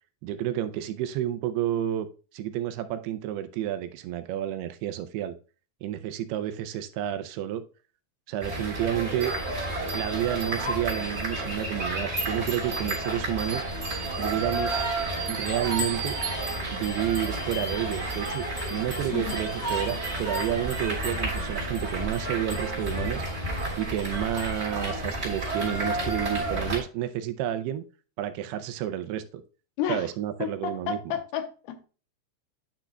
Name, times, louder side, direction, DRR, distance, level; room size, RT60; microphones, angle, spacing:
voice 1, 0.2-2.1 2.3-5.4 5.8-7.6 8.3-9.3 9.9-13.6 14.2-14.8 15.3-16.2 16.7-18.4 18.7-23.2 23.8-27.8 28.2-29.2 29.9-31.0, right 11 dB, 80° right, 2.5 m, -30 dB
sound 1, 8.4-26.8, right 2 dB, 15° right, 3.2 m, -31 dB
voice 2, 29.8-30.1 30.4-31.9, left 9 dB, 80° left, 2.6 m, -31 dB
10.0 x 6.1 x 2.2 m
omnidirectional pair, 4.8 m